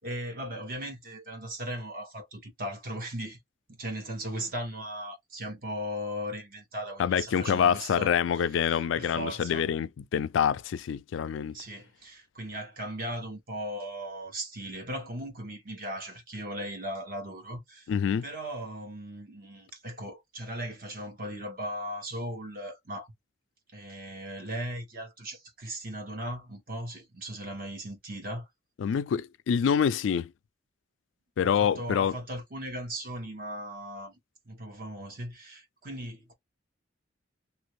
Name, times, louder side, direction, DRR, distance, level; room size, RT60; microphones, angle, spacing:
voice 1, 0.0-3.4 3.7-9.7 11.5-17.9 18.2-23.1 23.7-28.5 31.4-34.2 34.4-36.3, right 1 dB, 50° right, 1.1 m, -38 dB
voice 2, 7.0-11.6 17.9-18.2 28.8-30.3 31.4-32.1, left 7 dB, 85° left, 0.3 m, -26 dB
2.8 x 2.6 x 3.1 m
head